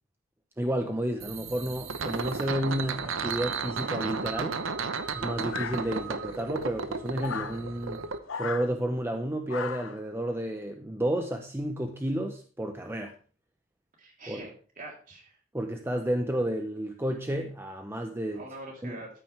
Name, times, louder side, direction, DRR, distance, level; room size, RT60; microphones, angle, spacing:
voice 1, 0.6-4.6 5.1-8.0 8.3-13.1 14.3-14.4 15.5-18.5 18.8-19.0, right 1 dB, 10° right, 5 dB, 0.7 m, -31 dB
sound 1, 1.2-8.2, right 5 dB, 80° right, 0.9 m, -34 dB
sound 2, 5.5-6.2 7.2-7.6 8.3-8.7 9.5-10.0, left 6 dB, 80° left, 0.8 m, -36 dB
voice 2, 14.0-15.3 18.4-19.1, right 1 dB, 45° right, -1 dB, 3.6 m, -44 dB
13.5 x 8.9 x 3.4 m, 0.41 s
head